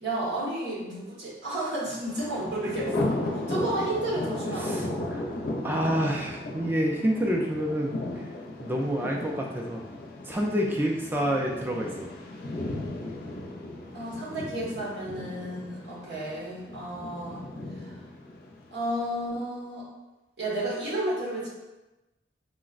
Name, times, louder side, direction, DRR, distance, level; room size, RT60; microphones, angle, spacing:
voice 1, 0.0-4.8 13.9-17.4 17.7-18.0 18.7-19.9 20.4-21.5, right 1 dB, 80° right, -7 dB, 1.1 m, -32 dB
Thunder, 2.1-19.1, left 1 dB, 55° left, 0.4 m, -35 dB
voice 2, 4.6-5.3 5.6-8.3 8.6-9.9 10.3-12.1, equal, 10° right, -1 dB, 0.3 m, -28 dB
4.0 x 2.0 x 2.4 m, 1.0 s
head